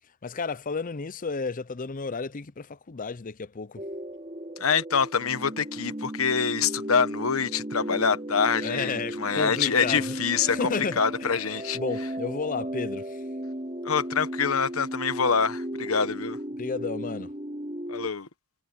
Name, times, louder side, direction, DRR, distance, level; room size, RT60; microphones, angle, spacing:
voice 1, 0.2-3.8 8.6-11.3 11.7-13.2 16.6-17.3, left 4 dB, 40° left, 0.6 m, -32 dB
sound 1, 3.8-18.1, right 1 dB, 30° right, 3.7 m, -35 dB
voice 2, 4.6-11.8 13.8-16.4 17.9-18.3, left 6 dB, 80° left, 1.2 m, -25 dB
head